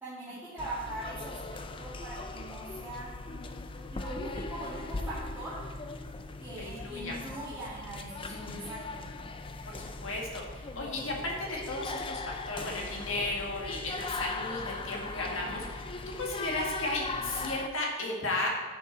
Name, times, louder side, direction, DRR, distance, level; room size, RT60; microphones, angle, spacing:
voice 1, 0.0-3.1 3.9-5.6 6.4-9.1 15.2-15.5, right 1 dB, 10° right, -11 dB, 2.1 m, -41 dB
sound 1, 0.6-17.7, left 3 dB, 25° left, 0.4 m, -39 dB
voice 2, 6.6-7.1 8.3-8.7 9.6-15.9 16.2-18.5, left 2 dB, 70° left, -1 dB, 1.9 m, -35 dB
10.5 x 6.1 x 4.0 m, 1.3 s
head